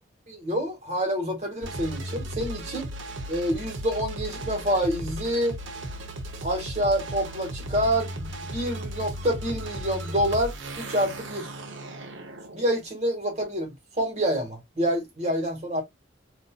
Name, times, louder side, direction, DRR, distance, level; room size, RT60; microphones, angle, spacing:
voice 1, 0.3-2.9 3.3-5.6 6.4-11.5 12.5-15.8, equal, 35° right, 1.6 m, -27 dB
sound 1, 1.6-12.7, right 1 dB, 80° right, 0.8 m, -36 dB
4.0 x 2.8 x 2.3 m
head